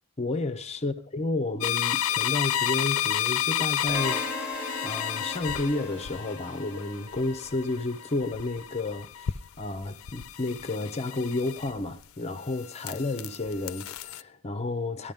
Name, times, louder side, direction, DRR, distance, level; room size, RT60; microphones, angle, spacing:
voice 1, 0.2-4.4 4.8-15.1, left 2 dB, 30° left, 0.7 m, -31 dB
sound 1, 1.6-12.0 12.4-14.2, left 10 dB, 70° left, 0.4 m, -32 dB
sound 2, 3.9-7.9, left 2 dB, 5° right, 3.7 m, -37 dB
13.5 x 12.5 x 3.6 m
head